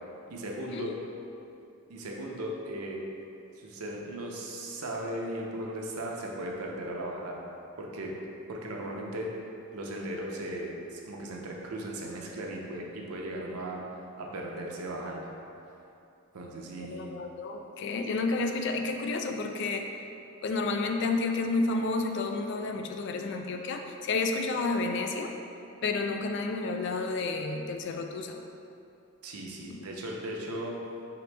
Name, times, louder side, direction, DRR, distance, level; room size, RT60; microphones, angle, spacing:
voice 1, 0.3-0.9 1.9-3.0 3.6-7.4 7.8-8.1 8.5-9.3 9.7-15.3 16.3-17.1 29.2-30.8, right 1 dB, 85° right, -1 dB, 0.6 m, -37 dB
voice 2, 16.8-19.9 20.4-25.3 25.8-28.4 29.7-29.8, left 3 dB, 55° left, 5 dB, 0.3 m, -30 dB
5.0 x 2.9 x 3.3 m, 2.7 s
head